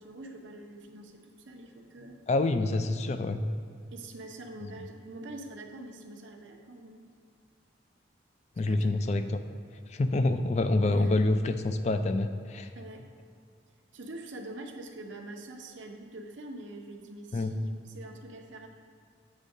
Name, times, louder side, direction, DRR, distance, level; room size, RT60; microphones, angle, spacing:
voice 1, 0.0-2.2 3.9-7.1 8.7-8.9 10.9-11.2 12.8-13.1 13.9-18.7, right 2 dB, 75° right, 2 dB, 0.7 m, -45 dB
voice 2, 2.3-3.5 8.6-9.4 9.9-12.7 17.3-17.6, left 2 dB, 35° left, 9 dB, 0.3 m, -27 dB
8.1 x 3.6 x 5.4 m, 2.3 s
head